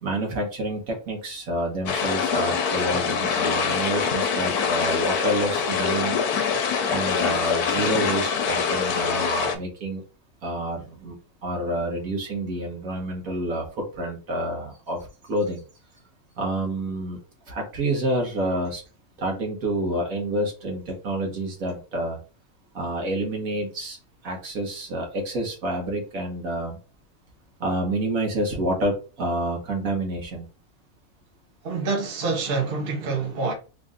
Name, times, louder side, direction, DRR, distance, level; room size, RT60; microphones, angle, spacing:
voice 1, 0.0-6.2 6.9-10.0 10.4-11.2 11.4-15.6 16.4-17.2 17.5-18.8 19.2-22.2 22.7-24.0 24.2-26.8 27.6-30.4, right 1 dB, 65° right, 1.7 m, -28 dB
sound 1, 1.9-9.6, left 6 dB, 80° left, 1.2 m, -24 dB
voice 2, 31.6-33.5, right 4 dB, 45° right, 1.1 m, -26 dB
3.8 x 2.6 x 3.6 m
omnidirectional pair, 1.6 m